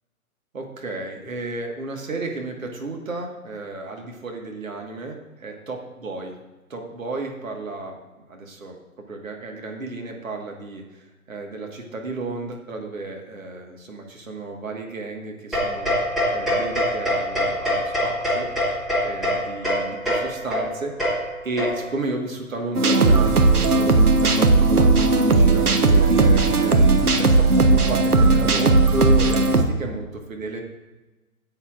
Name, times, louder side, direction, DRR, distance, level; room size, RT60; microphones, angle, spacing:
voice 1, 0.5-6.3 6.7-8.0 8.3-15.9 16.3-21.2 21.4-30.6, right 2 dB, 60° right, 2 dB, 1.8 m, -33 dB
sound 1, 15.5-22.1, equal, ahead, 0.7 m, -25 dB
sound 2, 22.7-29.6, right 3 dB, 85° right, 1.1 m, -16 dB
13.5 x 8.6 x 2.5 m, 1.1 s
figure-of-eight pair, 135°, 44 cm